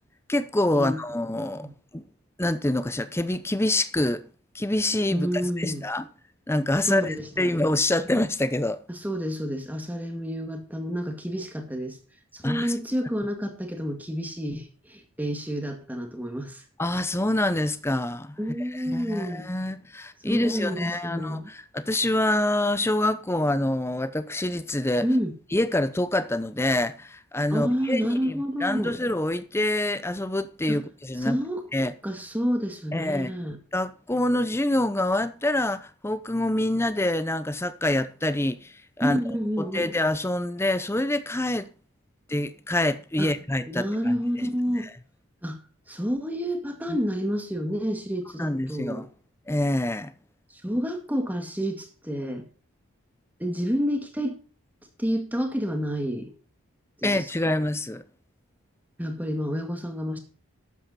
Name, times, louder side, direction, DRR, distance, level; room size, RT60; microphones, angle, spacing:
voice 1, 0.3-1.7 1.9-2.0 2.4-4.2 4.5-5.3 5.6-6.0 6.5-8.8 12.4-12.7 16.8-18.4 18.7-25.1 25.5-31.4 31.7-31.9 32.9-33.3 33.7-39.2 39.6-41.7 42.3-44.1 46.9-47.0 48.4-49.1 49.5-50.1 57.0-58.0, left 1 dB, 10° left, 0.7 m, -26 dB
voice 2, 5.1-5.8 6.8-7.6 8.9-12.0 12.3-16.6 18.4-19.5 20.3-21.5 25.0-25.3 27.5-29.0 30.7-30.8 31.2-31.6 32.0-33.6 39.0-39.9 43.2-43.3 43.7-44.9 45.4-49.1 50.5-52.5 53.4-54.4 55.0-56.3 57.0-57.3 59.0-60.2, equal, 10° right, 1.9 m, -29 dB
12.0 x 8.4 x 4.2 m
head